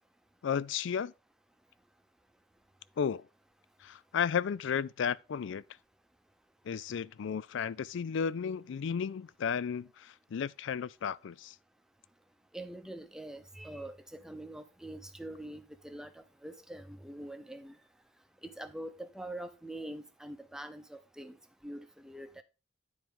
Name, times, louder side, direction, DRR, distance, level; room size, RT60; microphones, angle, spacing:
voice 1, 0.4-1.1 3.0-3.3 3.8-5.6 6.7-11.6, left 7 dB, 65° left, 0.4 m, -33 dB
voice 2, 12.5-17.7 18.4-21.3 21.6-22.4, right 1 dB, 5° right, 0.8 m, -44 dB
9.6 x 4.6 x 5.3 m
head